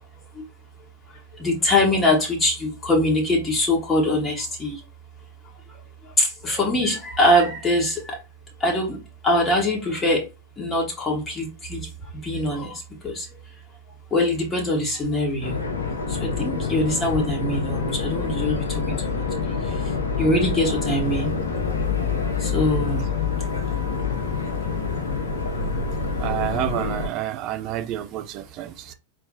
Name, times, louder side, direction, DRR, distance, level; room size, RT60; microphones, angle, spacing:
voice 1, 1.4-4.8 6.2-8.2 8.6-9.0 9.2-10.2 10.6-11.8 12.2-13.3 14.1-15.5 16.2-18.5 19.0-19.1 20.2-21.3 22.4-23.0, left 1 dB, 15° left, 1.3 m, -22 dB
sound 1, 15.4-27.1, left 5 dB, 70° left, 0.8 m, -26 dB
voice 2, 26.2-28.9, right 12 dB, 40° right, 0.5 m, -29 dB
4.3 x 3.1 x 2.7 m
figure-of-eight pair, 90°, 0 cm